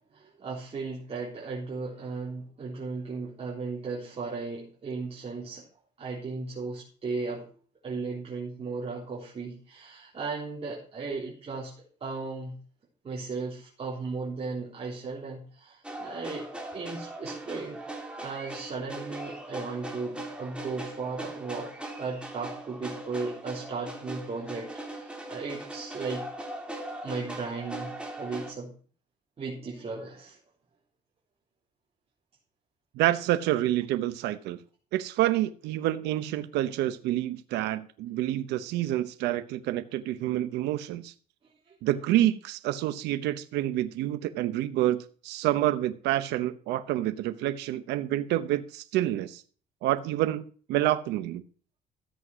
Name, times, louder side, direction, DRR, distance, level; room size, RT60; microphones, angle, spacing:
voice 1, 0.1-5.6 6.0-7.5 7.8-11.7 12.0-12.6 13.0-17.8 18.2-26.3 27.0-28.7 29.4-30.4, right 4 dB, 35° right, -4 dB, 3.9 m, -36 dB
sound 1, 15.8-28.5, right 1 dB, 5° right, 3.3 m, -40 dB
voice 2, 33.0-34.6 34.9-41.1 41.8-49.4 49.8-50.4 50.7-51.4, right 14 dB, 85° right, 11 dB, 0.9 m, -28 dB
14.0 x 8.0 x 6.1 m, 0.42 s
cardioid pair, 110°, 17 cm